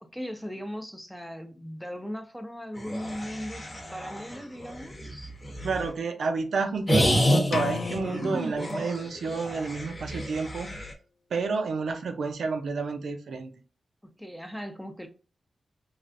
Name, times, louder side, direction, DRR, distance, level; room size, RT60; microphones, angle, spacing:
voice 1, 0.0-3.6 3.9-5.3 14.0-15.1, equal, ahead, 0.6 m, -38 dB
sound 1, 2.8-5.9 6.9-10.9, equal, 30° left, 0.9 m, -29 dB
voice 2, 5.6-10.9 11.3-13.5, right 4 dB, 80° right, 0.5 m, -30 dB
sound 2, 7.5-9.4, left 5 dB, 70° left, 0.3 m, -35 dB
3.2 x 2.4 x 2.5 m
cardioid pair, 70°, 0 cm